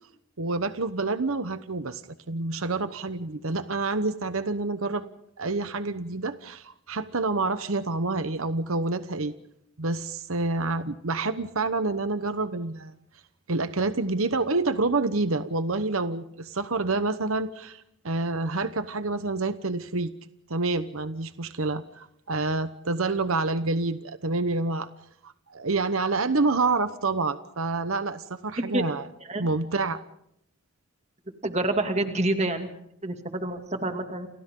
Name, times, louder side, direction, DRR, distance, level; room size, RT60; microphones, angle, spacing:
voice 1, 0.4-2.0 2.3-5.1 5.4-9.3 9.8-13.0 13.5-20.1 20.5-24.9 25.2-29.1 29.4-30.0, right 3 dB, 80° right, 11 dB, 1.1 m, -28 dB
voice 2, 31.4-32.7 33.0-34.3, right 2 dB, 30° right, 6 dB, 2.6 m, -27 dB
29.5 x 29.0 x 3.9 m, 0.75 s
head